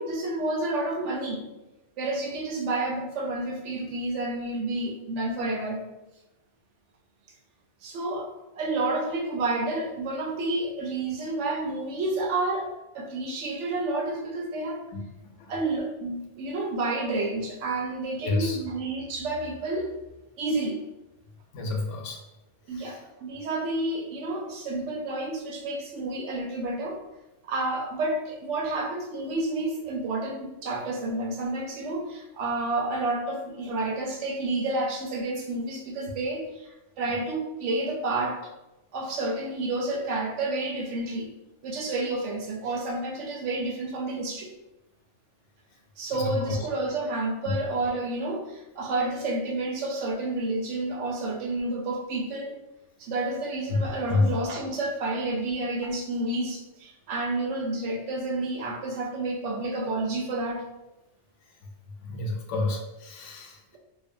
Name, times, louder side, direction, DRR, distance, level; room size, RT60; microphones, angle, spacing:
voice 1, 0.0-1.4 2.0-5.8 7.8-8.3 8.5-14.8 15.5-19.9 20.4-20.8 22.7-27.0 27.4-38.5 38.9-41.3 41.6-44.5 46.0-52.6 53.0-60.6, right 2 dB, 85° right, 1 dB, 0.9 m, -30 dB
voice 2, 18.2-18.6 21.5-22.2 22.7-23.0 46.1-46.6 53.7-53.8 54.1-54.3 62.0-63.8, left 3 dB, 85° left, 1 dB, 0.9 m, -29 dB
2.5 x 2.1 x 2.5 m, 1.0 s
omnidirectional pair, 1.2 m